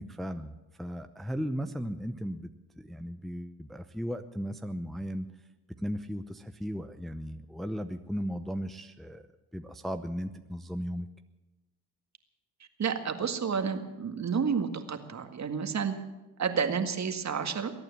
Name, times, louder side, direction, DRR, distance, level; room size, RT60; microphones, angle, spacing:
voice 1, 0.0-2.5 2.8-5.3 5.8-9.2 9.5-11.1, equal, ahead, 8 dB, 0.8 m, -36 dB
voice 2, 12.8-15.9 16.4-17.7, right 6 dB, 40° right, 8 dB, 1.9 m, -30 dB
22.0 x 9.2 x 7.2 m, 1.1 s
supercardioid pair, 70°, 41 cm